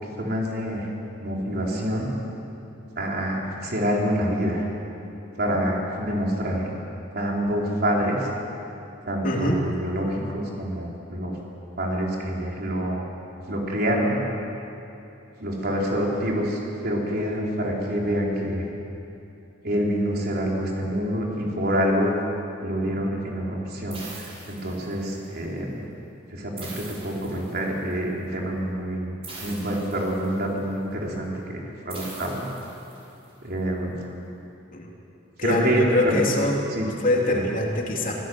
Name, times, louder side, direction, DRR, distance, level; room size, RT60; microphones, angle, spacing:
voice 1, 0.0-0.9 1.2-2.1 3.0-4.7 5.4-6.7 7.1-8.3 9.1-11.4 11.8-13.0 13.5-14.2 15.4-18.6 19.6-22.1 22.6-25.8 26.3-29.1 29.4-32.5 33.4-33.9 35.4-36.2 36.7-36.9 37.3-37.4, equal, 55° right, -2 dB, 4.1 m, -26 dB
voice 2, 9.2-9.6 34.7-34.9 35.4-36.5 37.0-38.1, left 1 dB, 50° left, -1 dB, 3.2 m, -24 dB
sound 1, 23.9-25.2 26.6-27.9 29.2-30.6 31.9-33.2, right 3 dB, 30° right, 6.2 m, -42 dB
24.0 x 16.5 x 7.9 m, 2.9 s
head